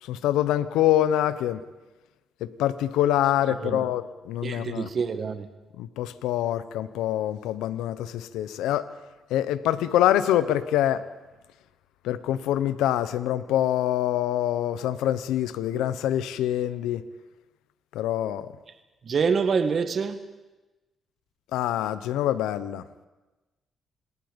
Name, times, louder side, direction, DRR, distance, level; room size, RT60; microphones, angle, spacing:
voice 1, 0.0-1.6 2.4-4.9 5.8-8.9 9.3-11.1 12.0-17.0 17.9-18.5 21.5-22.8, left 12 dB, 90° left, 14 dB, 0.8 m, -25 dB
voice 2, 4.4-5.5 19.0-20.2, right 5 dB, 50° right, 9 dB, 1.8 m, -26 dB
26.5 x 19.5 x 5.3 m, 1.1 s
cardioid pair, 70°, 0 cm